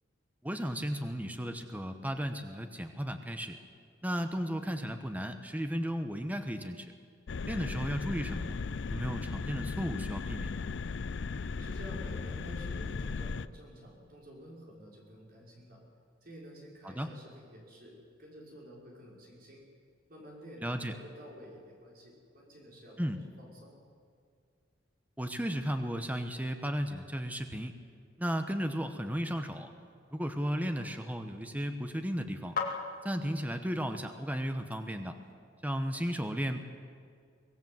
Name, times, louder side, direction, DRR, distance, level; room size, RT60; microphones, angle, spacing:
voice 1, 0.4-3.6 4.0-6.9 7.5-8.6 8.9-10.6 16.8-17.1 20.6-20.9 23.0-23.2 25.2-27.8 28.2-29.7 30.1-32.5 33.0-35.2 35.6-36.6, equal, 10° right, 7 dB, 1.0 m, -34 dB
sound 1, 7.3-13.5, left 4 dB, 65° left, 0.5 m, -37 dB
voice 2, 11.6-15.8 16.2-19.7 20.1-23.0 23.4-23.8, equal, 45° right, -3 dB, 5.6 m, -50 dB
sound 2, 29.5-35.3, left 5 dB, 45° left, 2.4 m, -44 dB
24.0 x 18.0 x 7.8 m, 2.2 s
head